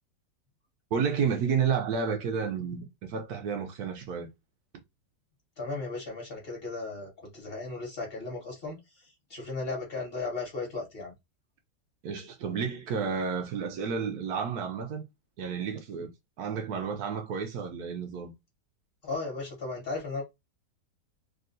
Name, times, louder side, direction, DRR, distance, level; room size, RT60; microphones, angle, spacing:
voice 1, 0.9-4.3 12.0-15.0 15.4-16.1 16.4-18.3, right 6 dB, 70° right, 1.1 m, -31 dB
voice 2, 5.6-11.1 19.0-20.2, left 3 dB, 35° left, 1.4 m, -36 dB
3.6 x 2.5 x 2.6 m
omnidirectional pair, 1.8 m